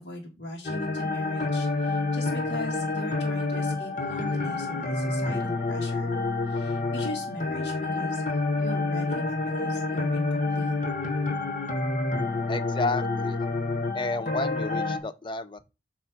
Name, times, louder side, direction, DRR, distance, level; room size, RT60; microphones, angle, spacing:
voice 1, 0.0-6.2 6.5-10.8, left 1 dB, 85° left, 1.7 m, -40 dB
sound 1, 0.6-15.0, left 3 dB, 45° left, 1.1 m, -28 dB
voice 2, 12.5-13.4 13.9-15.6, left 3 dB, 30° left, 0.5 m, -31 dB
7.9 x 3.1 x 5.8 m
head